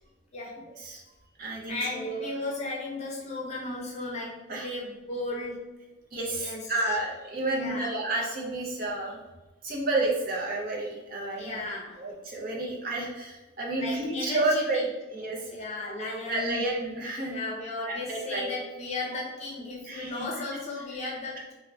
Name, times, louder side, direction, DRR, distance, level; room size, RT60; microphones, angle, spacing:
voice 1, 0.3-0.6 1.7-5.6 6.4-7.0 7.5-7.9 11.4-12.1 13.8-14.8 15.5-16.7 17.3-21.5, left 2 dB, 35° left, -3 dB, 0.6 m, -35 dB
voice 2, 1.4-2.3 4.5-4.7 6.1-9.2 9.6-11.6 12.0-14.8 15.1-15.5 16.3-17.3 17.9-18.6 19.8-20.2, right 2 dB, 45° right, -2 dB, 0.6 m, -30 dB
2.8 x 2.2 x 3.4 m, 1.1 s
head